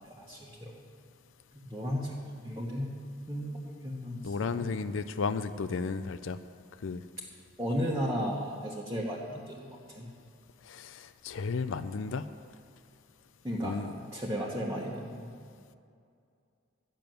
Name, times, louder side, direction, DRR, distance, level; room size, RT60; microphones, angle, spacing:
voice 1, 0.2-0.8 1.5-3.0 3.3-4.7 7.6-10.1 13.4-13.8 14.1-15.3, equal, 15° right, -5 dB, 1.3 m, -35 dB
voice 2, 4.2-6.4 6.8-7.0 10.7-12.3 13.6-13.9, left 4 dB, 75° left, 11 dB, 0.5 m, -33 dB
12.0 x 6.9 x 9.2 m, 2.3 s
head